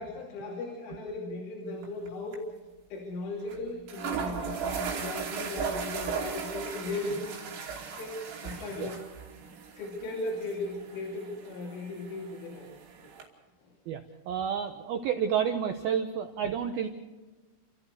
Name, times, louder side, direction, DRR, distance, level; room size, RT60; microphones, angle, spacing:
voice 1, 0.0-2.4 2.9-7.2 8.0-9.0 9.8-12.7 13.6-13.7, left 2 dB, 75° left, -1 dB, 5.4 m, -37 dB
sound 1, 1.8-2.1 2.3-2.4 3.5-3.6 3.9-13.3, right 6 dB, 65° right, 5.0 m, -37 dB
voice 2, 13.9-16.9, right 8 dB, 85° right, 6 dB, 2.1 m, -30 dB
30.0 x 14.0 x 6.6 m, 1.3 s
omnidirectional pair, 5.6 m